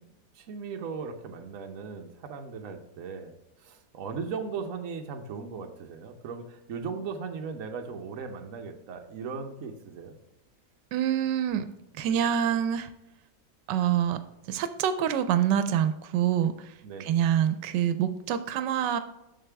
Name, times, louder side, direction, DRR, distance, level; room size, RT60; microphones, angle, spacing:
voice 1, 0.3-3.3 3.6-10.1 16.8-17.2, right 5 dB, 55° right, 4 dB, 1.1 m, -38 dB
voice 2, 10.9-11.7 12.0-12.9 13.7-14.2 14.5-16.5 17.0-19.0, right 9 dB, 85° right, 11 dB, 1.2 m, -26 dB
7.5 x 6.5 x 3.4 m, 0.94 s
omnidirectional pair, 1.8 m